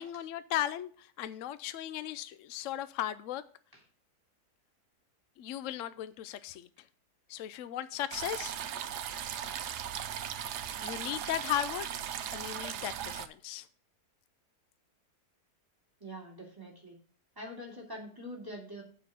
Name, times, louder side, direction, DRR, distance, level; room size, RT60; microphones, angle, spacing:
voice 1, 0.0-3.4 5.4-6.7 7.3-8.5 10.8-11.9 12.3-13.7, left 12 dB, 65° left, 14 dB, 0.8 m, -36 dB
sound 1, 8.1-13.3, right 9 dB, 80° right, 1.3 m, -38 dB
voice 2, 16.0-17.0 17.4-18.8, equal, 15° right, -2 dB, 2.8 m, -44 dB
7.5 x 5.8 x 6.8 m, 0.44 s
omnidirectional pair, 1.7 m